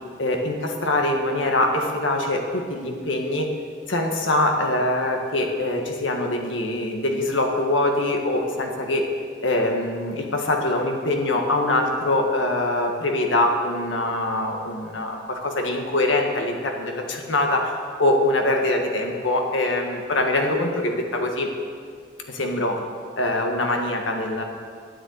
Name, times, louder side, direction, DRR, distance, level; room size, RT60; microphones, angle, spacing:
voice 1, 0.2-3.5 3.9-9.1 9.4-17.7 18.0-21.5 22.3-22.8 23.2-24.4, left 1 dB, 90° left, 2 dB, 1.7 m, -23 dB
12.5 x 9.6 x 8.1 m, 2.1 s
head